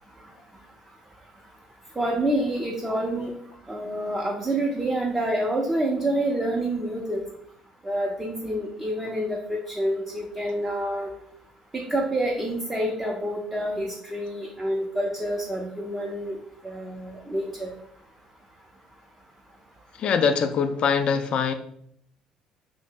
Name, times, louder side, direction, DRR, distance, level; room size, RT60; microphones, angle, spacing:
voice 1, 2.0-3.3 3.7-7.2 7.8-9.4 9.7-11.1 11.7-16.4 16.6-17.7, right 1 dB, 15° right, -2 dB, 0.5 m, -27 dB
voice 2, 20.0-21.5, left 6 dB, 55° left, 9 dB, 0.3 m, -23 dB
2.7 x 2.0 x 3.7 m, 0.68 s
supercardioid pair, 90°, 2 cm